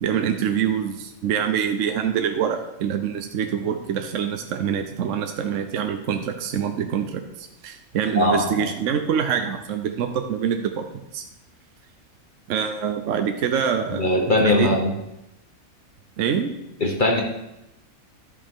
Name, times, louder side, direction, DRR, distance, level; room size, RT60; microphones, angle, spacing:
voice 1, 0.0-10.9 11.1-11.2 12.5-14.7 16.2-16.5, right 8 dB, 65° right, 6 dB, 1.0 m, -25 dB
voice 2, 8.1-8.7 13.9-14.9 16.8-17.2, left 2 dB, 40° left, 1 dB, 1.0 m, -20 dB
11.5 x 8.4 x 3.6 m, 0.89 s
omnidirectional pair, 1.5 m